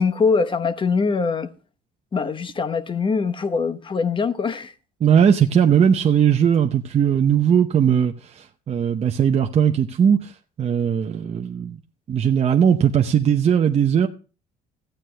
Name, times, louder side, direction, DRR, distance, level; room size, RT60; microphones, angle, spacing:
voice 1, 0.0-1.5 2.1-4.7, left 5 dB, 30° left, 1.0 m, -22 dB
voice 2, 5.0-10.3 10.6-11.8 12.1-14.1, right 8 dB, 40° right, 0.8 m, -18 dB
14.5 x 9.2 x 3.3 m
cardioid pair, 110°, 17 cm